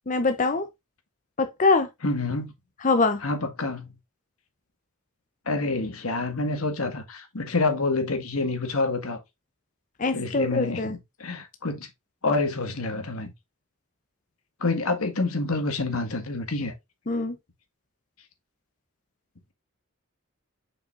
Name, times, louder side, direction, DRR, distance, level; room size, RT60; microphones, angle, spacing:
voice 1, 0.1-0.7 1.4-1.9 2.8-3.2 10.0-11.0 17.1-17.4, left 3 dB, 35° left, 0.6 m, -23 dB
voice 2, 2.0-2.5 3.2-3.9 5.5-9.2 10.1-10.9 11.2-11.9 12.2-13.3 14.6-16.7, left 3 dB, 90° left, 1.8 m, -27 dB
7.1 x 5.5 x 2.5 m
head